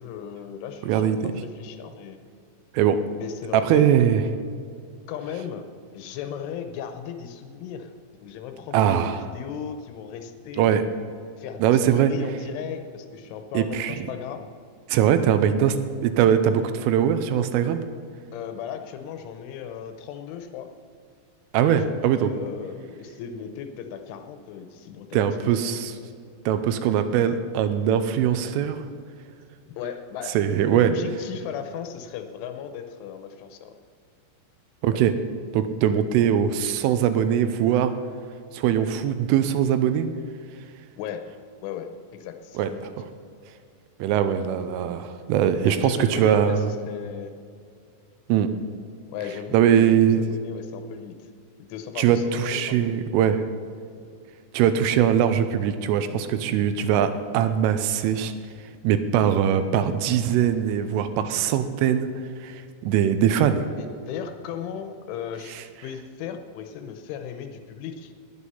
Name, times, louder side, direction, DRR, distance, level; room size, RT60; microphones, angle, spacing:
voice 1, 0.0-2.2 3.2-3.8 5.1-5.7 5.9-7.9 8.2-10.8 11.4-14.5 18.3-20.7 21.6-25.3 29.7-33.7 34.9-35.0 41.0-41.2 41.6-42.9 45.7-47.3 49.1-51.2 51.6-53.0 63.8-65.6 65.8-68.1, left 8 dB, 80° left, 7 dB, 3.1 m, -36 dB
voice 2, 0.8-1.3 2.7-3.0 3.5-4.2 8.7-9.2 10.6-10.8 11.6-12.1 13.5-14.1 14.9-17.8 21.5-22.3 25.1-25.9 26.5-28.8 30.3-30.9 34.8-35.1 35.5-37.9 38.5-40.1 42.6-42.7 43.0-43.1 44.0-46.7 48.3-48.5 49.5-50.2 52.0-53.4 54.5-58.3 58.8-62.1 62.4-63.7 65.5-65.6, right 9 dB, 85° right, 10 dB, 3.2 m, -21 dB
20.0 x 8.2 x 5.6 m, 2.3 s
omnidirectional pair, 5.8 m